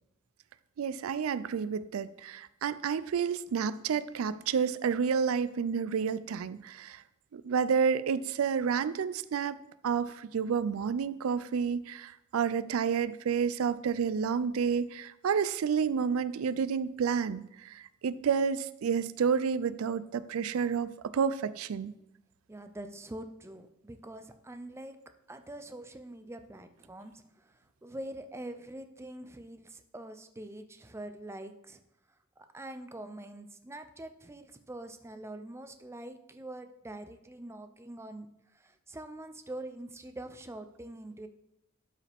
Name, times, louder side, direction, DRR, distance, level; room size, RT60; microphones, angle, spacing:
voice 1, 0.8-7.0 7.3-9.6 9.8-17.4 18.0-21.9, right 6 dB, 75° right, 16 dB, 0.4 m, -30 dB
voice 2, 22.5-25.0 25.3-27.5 27.8-31.8 32.4-38.3 38.5-41.3, right 1 dB, 15° right, 8 dB, 0.5 m, -44 dB
12.0 x 4.9 x 3.5 m, 0.85 s
head